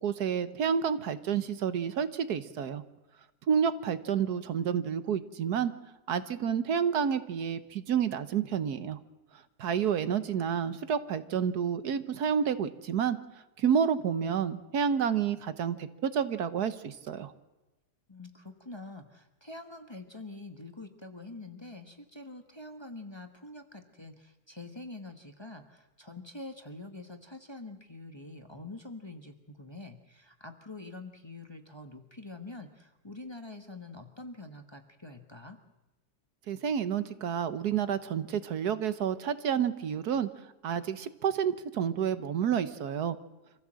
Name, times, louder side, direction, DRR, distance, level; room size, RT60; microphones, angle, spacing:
voice 1, 0.0-2.8 3.5-5.7 6.1-9.0 9.6-13.2 13.6-17.3 36.5-40.3 40.6-43.2, right 7 dB, 75° right, 13 dB, 1.5 m, -29 dB
voice 2, 18.1-35.6, left 2 dB, 20° left, 6 dB, 1.3 m, -45 dB
25.5 x 15.0 x 7.6 m, 1.0 s
omnidirectional pair, 1.7 m